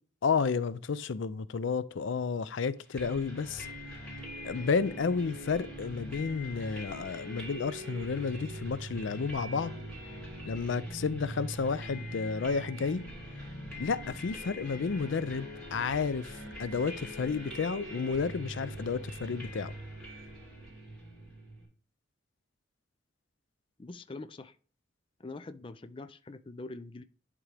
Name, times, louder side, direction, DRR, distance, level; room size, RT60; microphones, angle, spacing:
voice 1, 0.2-3.7 4.4-9.7 10.5-13.0 13.8-19.7, left 5 dB, 85° left, 0.5 m, -31 dB
sound 1, 3.0-21.6, equal, 5° left, 2.8 m, -42 dB
voice 2, 23.8-24.6 25.2-27.0, left 3 dB, 25° left, 0.4 m, -44 dB
11.0 x 3.7 x 3.3 m
head